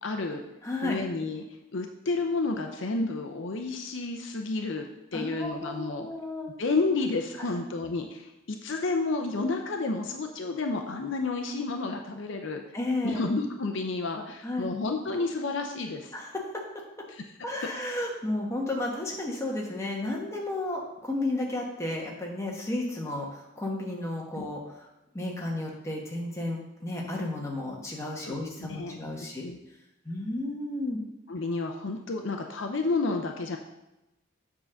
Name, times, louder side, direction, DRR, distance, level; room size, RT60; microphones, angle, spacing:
voice 1, 0.0-0.4 0.8-1.5 1.7-4.9 5.1-6.1 6.6-12.6 13.0-16.1 17.1-17.2 24.4-24.5 28.2-29.0 29.4-29.6 31.3-33.6, left 3 dB, 60° left, 4 dB, 0.6 m, -30 dB
voice 2, 0.6-1.0 5.1-6.5 12.7-13.3 14.4-14.7 16.1-16.6 17.4-24.9 25.1-29.5 30.0-31.0, left 2 dB, 15° left, -1 dB, 1.2 m, -33 dB
7.2 x 3.8 x 6.3 m, 0.93 s
head